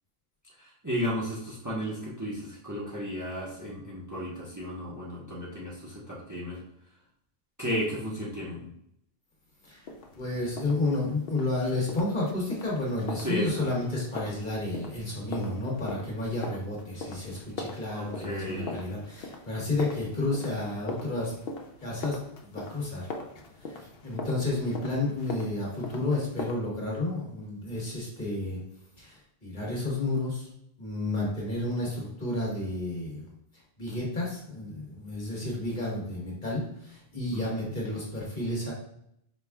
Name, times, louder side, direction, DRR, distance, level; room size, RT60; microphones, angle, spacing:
voice 1, 0.6-6.6 7.6-8.7 13.2-13.6 17.9-18.8 37.3-37.7, equal, 20° right, -5 dB, 1.0 m, -34 dB
sound 1, 9.9-26.5, left 3 dB, 70° left, 0.8 m, -41 dB
voice 2, 10.2-21.3 21.8-23.1 23.6-28.6 29.0-30.5 30.8-33.3 33.8-38.7, left 2 dB, 50° left, -5 dB, 1.8 m, -31 dB
5.3 x 4.3 x 2.4 m, 0.73 s
omnidirectional pair, 1.1 m